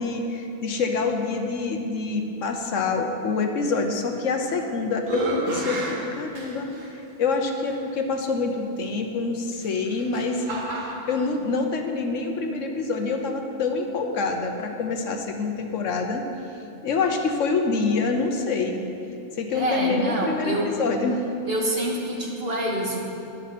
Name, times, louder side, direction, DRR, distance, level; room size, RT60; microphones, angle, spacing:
voice 1, 0.0-6.7 7.2-16.2 16.8-18.9 19.4-21.2, left 4 dB, 75° left, 4 dB, 1.3 m, -26 dB
sound 1, 4.2-4.6 5.0-6.9 7.6-7.7 9.5-11.2, right 2 dB, 85° right, 1.9 m, -31 dB
voice 2, 19.5-20.7 21.5-23.0, right 1 dB, 50° right, -2 dB, 1.8 m, -26 dB
12.0 x 10.5 x 4.2 m, 2.7 s
omnidirectional pair, 1.3 m